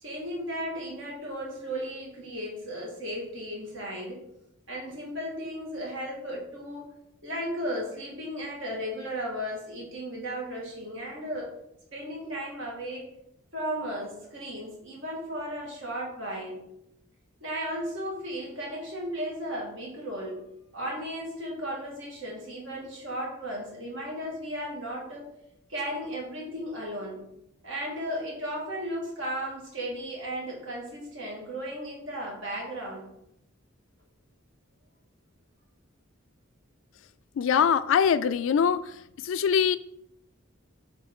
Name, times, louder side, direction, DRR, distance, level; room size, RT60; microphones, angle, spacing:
voice 1, 0.0-4.2 4.7-6.9 7.2-11.5 11.9-13.1 13.5-16.6 17.4-20.5 20.7-25.3 25.7-27.3 27.6-33.1, equal, 65° right, -2 dB, 1.9 m, -35 dB
voice 2, 37.4-38.9 39.2-39.8, left 7 dB, 70° left, 15 dB, 0.3 m, -23 dB
6.9 x 3.7 x 3.7 m, 0.78 s
head